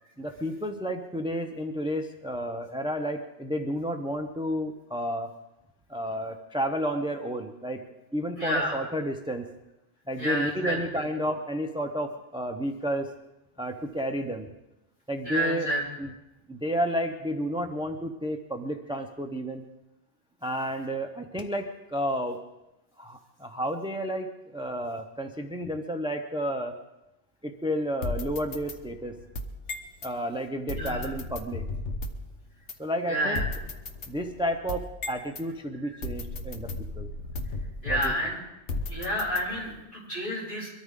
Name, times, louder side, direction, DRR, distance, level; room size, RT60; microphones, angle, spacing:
voice 1, 0.2-5.3 5.9-7.8 8.1-9.5 10.1-13.1 13.6-14.5 15.1-15.7 16.0-16.1 16.5-19.6 20.4-22.4 23.0-26.8 27.4-29.2 30.0-31.6 32.8-33.4 34.1-37.1 37.9-38.1, equal, 5° right, 5 dB, 0.6 m, -31 dB
voice 2, 8.3-8.7 10.2-10.8 15.2-15.8 30.7-31.1 33.1-33.4 37.8-38.4 38.9-40.7, equal, 45° left, -7 dB, 7.9 m, -29 dB
sound 1, 28.0-30.1 30.7-32.3 32.7-32.8 33.3-35.5 36.0-38.3 38.7-39.8, left 2 dB, 75° left, 1.4 m, -35 dB
23.5 x 13.5 x 3.7 m, 0.95 s
omnidirectional pair, 1.2 m